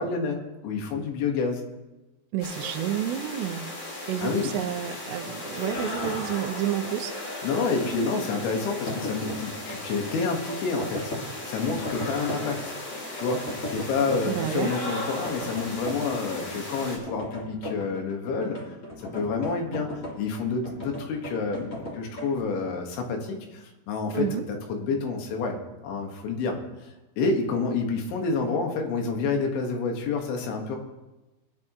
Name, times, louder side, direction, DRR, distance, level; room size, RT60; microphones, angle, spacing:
voice 1, 0.0-1.7 4.2-4.5 7.4-11.1 11.5-12.8 13.1-18.6 19.1-19.9 20.2-24.4 24.7-25.6 25.8-26.6 27.2-30.8, left 4 dB, 90° left, 2 dB, 4.1 m, -28 dB
voice 2, 2.3-3.7 4.1-7.1 14.3-14.8 24.1-24.5, right 11 dB, 80° right, 4 dB, 2.8 m, -30 dB
sound 1, 2.4-17.0, left 2 dB, 55° left, 5.6 m, -36 dB
sound 2, 5.6-22.4, left 1 dB, 35° left, 1.3 m, -38 dB
21.5 x 10.5 x 3.1 m, 1.1 s
omnidirectional pair, 5.2 m